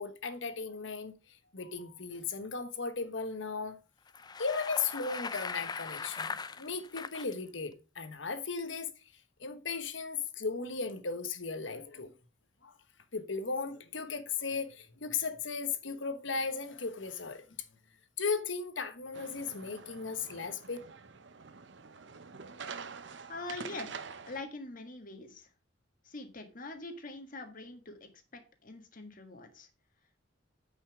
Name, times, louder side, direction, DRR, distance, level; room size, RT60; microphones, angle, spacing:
voice 1, 0.0-3.8 4.4-8.9 9.4-12.2 12.6-12.7 13.1-17.4 18.2-20.8, left 5 dB, 75° left, 1.2 m, -36 dB
Bicycle, 4.1-7.3, left 5 dB, 20° left, 0.4 m, -40 dB
sound 1, 19.1-24.4, right 5 dB, 65° right, 0.8 m, -46 dB
voice 2, 23.3-25.5 26.0-29.7, left 2 dB, 45° left, 1.7 m, -44 dB
9.2 x 5.6 x 4.8 m
head